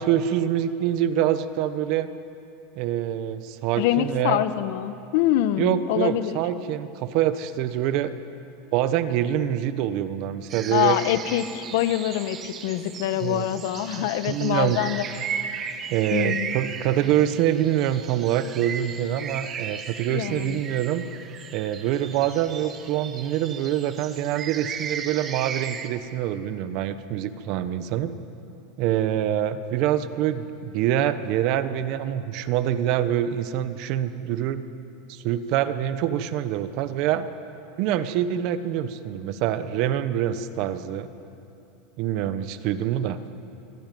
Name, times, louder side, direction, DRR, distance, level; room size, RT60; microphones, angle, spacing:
voice 1, 0.0-2.1 2.8-4.4 5.6-8.1 8.7-11.0 13.2-13.5 14.0-14.8 15.9-21.0 21.5-28.1 28.8-34.6 35.1-37.3 37.8-41.1 42.0-43.2, right 11 dB, 50° right, 12 dB, 1.1 m, -25 dB
voice 2, 3.8-6.3 10.7-15.0 16.1-16.5 20.1-20.6, left 13 dB, 65° left, 11 dB, 1.2 m, -25 dB
sound 1, 10.5-25.9, right 7 dB, 25° right, 1.3 m, -36 dB
24.5 x 17.0 x 9.4 m, 2.7 s
supercardioid pair, 155°, 0 cm